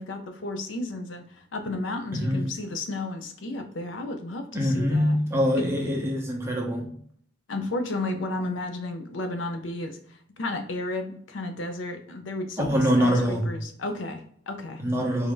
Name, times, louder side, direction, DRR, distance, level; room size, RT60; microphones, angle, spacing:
voice 1, 0.0-5.2 5.6-5.7 7.5-10.0 10.4-14.8, left 2 dB, 80° left, 0.6 m, -33 dB
voice 2, 2.1-2.6 4.5-6.9 12.6-13.6 14.8-15.3, equal, 15° right, 0.6 m, -24 dB
3.5 x 2.6 x 3.6 m
head